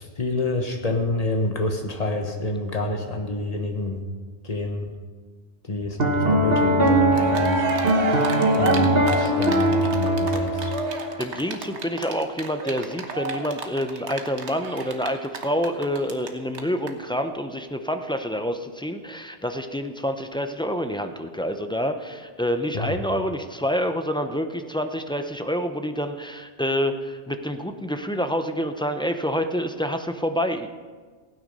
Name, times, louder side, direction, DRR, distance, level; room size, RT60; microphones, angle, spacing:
voice 1, 0.0-4.0 4.4-4.9 5.6-8.3 8.6-10.7 22.7-23.0, left 2 dB, 35° left, 4 dB, 1.3 m, -27 dB
Piano, 6.0-11.3, right 1 dB, 60° right, 1.5 m, -21 dB
Cheering, 6.9-7.0 7.1-16.3 16.5-16.6 16.9-17.0, right 4 dB, 80° right, 1.4 m, -30 dB
voice 2, 11.2-30.7, equal, 5° left, 7 dB, 0.5 m, -27 dB
16.0 x 9.2 x 5.4 m, 1.5 s
omnidirectional pair, 1.1 m